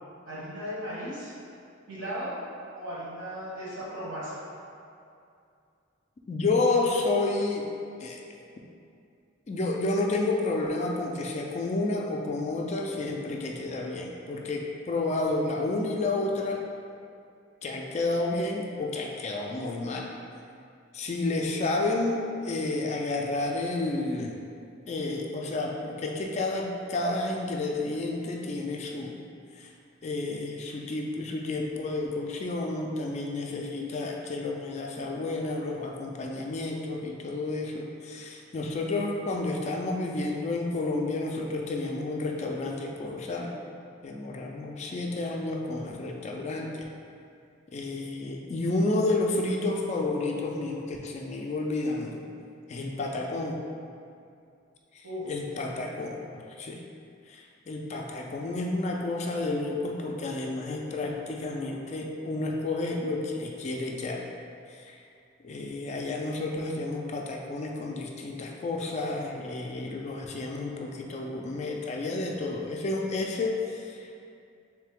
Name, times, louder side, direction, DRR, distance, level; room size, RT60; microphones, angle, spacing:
voice 1, 0.3-1.3 1.9-2.3 2.7-4.3 14.3-14.4 55.0-55.3 55.7-56.2, equal, 65° right, -8 dB, 1.4 m, -37 dB
voice 2, 6.3-7.7 8.0-8.2 9.5-16.6 17.6-20.1 20.9-24.4 24.9-29.2 29.6-29.7 30.0-43.5 44.0-46.9 47.7-52.3 52.7-53.6 54.9-56.8 57.3-64.2 64.7-65.0 65.4-74.2, left 2 dB, 35° left, 0 dB, 0.3 m, -30 dB
3.7 x 3.2 x 3.4 m, 2.5 s
head